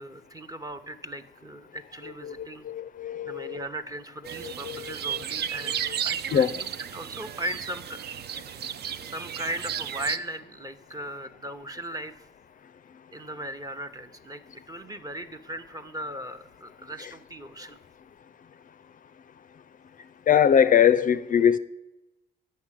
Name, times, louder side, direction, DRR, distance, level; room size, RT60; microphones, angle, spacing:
voice 1, 0.0-2.7 3.2-6.7 6.9-8.1 9.0-12.1 13.1-17.8, right 1 dB, 20° right, 0.8 m, -38 dB
voice 2, 2.0-3.6 4.4-5.2 5.6-6.0 6.3-6.6 17.0-17.1 17.6-17.7 20.3-21.6, left 8 dB, 45° left, 0.4 m, -23 dB
sound 1, 4.2-10.2, right 9 dB, 60° right, 0.5 m, -34 dB
8.3 x 6.5 x 7.4 m
cardioid pair, 90°, 19 cm